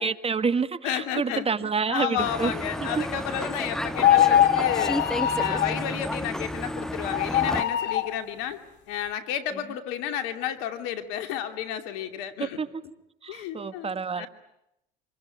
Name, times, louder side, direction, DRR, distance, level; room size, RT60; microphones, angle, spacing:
voice 1, 0.0-2.5 3.0-3.1 12.6-12.7 13.2-14.3, right 5 dB, 30° right, 13 dB, 1.6 m, -28 dB
voice 2, 0.8-5.0 5.3-8.6 8.9-12.6 13.3-14.3, left 9 dB, 75° left, 8 dB, 2.8 m, -32 dB
sound 1, 2.2-7.6, equal, ahead, 1.3 m, -32 dB
sound 2, 3.9-5.8 7.1-8.1, left 10 dB, 55° left, 3.2 m, -22 dB
27.0 x 21.5 x 9.4 m, 0.83 s
hypercardioid pair, 75°, 21 cm